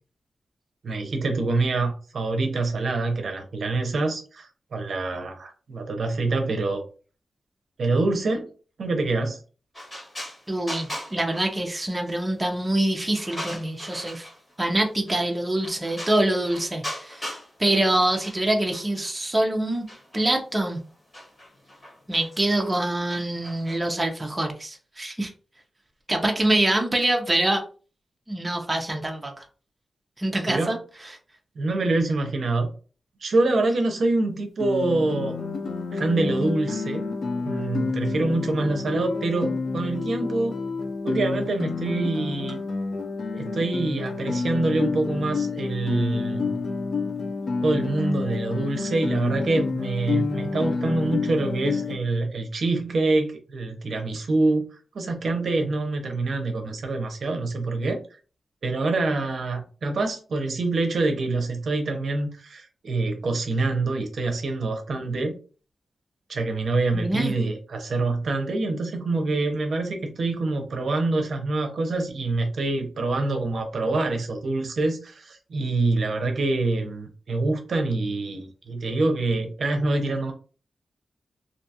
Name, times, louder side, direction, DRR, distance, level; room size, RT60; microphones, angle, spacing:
voice 1, 0.8-6.8 7.8-8.5 8.8-9.4 30.5-30.7 31.6-32.7 33.2-35.4 35.9-37.1 37.4-40.6 41.0-42.6 43.3-46.5 47.6-58.0 58.6-65.3 66.3-80.3, right 2 dB, 60° right, 5 dB, 0.6 m, -25 dB
sound 1, 9.7-12.2 12.5-14.5 15.1-15.3 15.6-17.5 17.8-19.1 19.7-23.8, equal, 30° left, 1.4 m, -39 dB
voice 2, 10.5-14.3 14.6-19.8 20.1-20.8 22.1-25.3 26.1-27.6 28.3-29.3 30.2-30.8 66.9-67.3, right 1 dB, 15° right, 2 dB, 0.5 m, -25 dB
Guitar, 34.6-52.0, left 4 dB, 65° left, 0.4 m, -29 dB
2.6 x 2.3 x 2.7 m, 0.37 s
wide cardioid pair, 135°, 0 cm